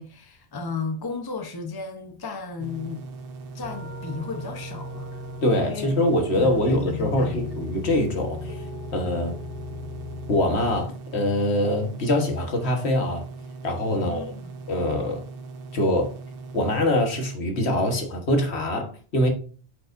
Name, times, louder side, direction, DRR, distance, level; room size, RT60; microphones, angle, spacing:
voice 1, 0.0-3.1 3.5-5.1 5.7-5.9 6.3-7.6 13.9-14.6, left 4 dB, 20° left, 0.8 m, -34 dB
sound 1, 2.6-17.4, right 3 dB, 60° right, 0.8 m, -40 dB
sound 2, 3.6-10.8, left 3 dB, 85° right, 1.6 m, -37 dB
voice 2, 5.4-8.6 8.9-9.3 10.3-13.2 13.6-14.3 14.7-15.2 15.7-16.1 16.5-19.3, left 1 dB, 65° left, 1.6 m, -24 dB
8.2 x 5.2 x 2.6 m
omnidirectional pair, 1.2 m